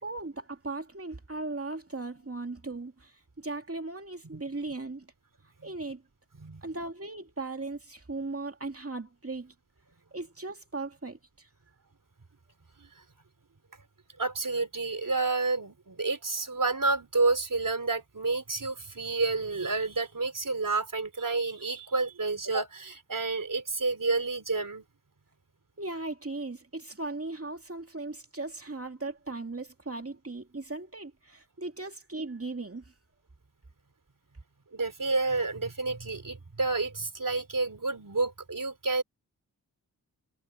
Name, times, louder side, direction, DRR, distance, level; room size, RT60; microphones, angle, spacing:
voice 1, 0.0-5.1 5.6-6.0 6.6-9.5 10.1-11.5 25.8-32.8, right 3 dB, 35° right, 2.5 m, -38 dB
voice 2, 14.2-24.8 34.7-39.0, right 3 dB, 55° right, 4.0 m, -29 dB
cardioid pair, 45°, 38 cm